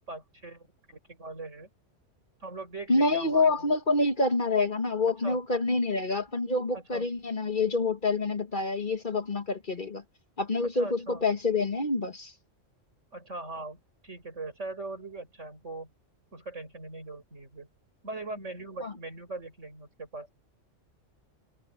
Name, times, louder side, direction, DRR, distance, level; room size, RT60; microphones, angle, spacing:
voice 1, 0.0-1.7 2.4-3.7 5.2-5.4 6.7-7.0 10.7-11.2 13.1-15.9 16.3-17.7 18.0-20.4, right 2 dB, 75° right, 6.6 m, -41 dB
voice 2, 2.9-10.0 10.4-12.3 18.8-18.9, left 3 dB, 40° left, 1.7 m, -27 dB
omnidirectional pair, 1.3 m